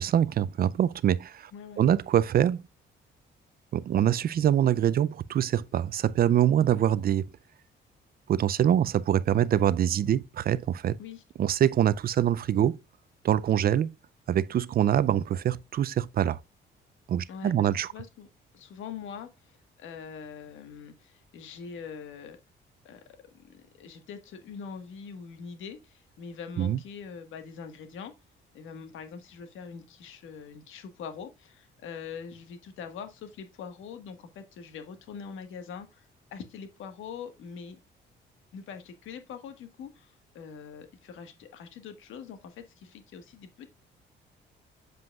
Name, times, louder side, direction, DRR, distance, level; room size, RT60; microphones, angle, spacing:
voice 1, 0.0-1.5 1.8-2.6 3.7-7.3 8.3-11.0 11.4-12.8 13.2-13.9 14.3-16.4 17.1-17.9 26.6-26.8, right 10 dB, 50° right, 0.4 m, -24 dB
voice 2, 1.5-1.8 11.0-11.2 17.3-18.3 18.5-22.4 22.8-28.1 28.5-37.8 38.5-43.7, left 6 dB, 85° left, 1.5 m, -43 dB
7.7 x 7.5 x 2.3 m
cardioid pair, 90°, 20 cm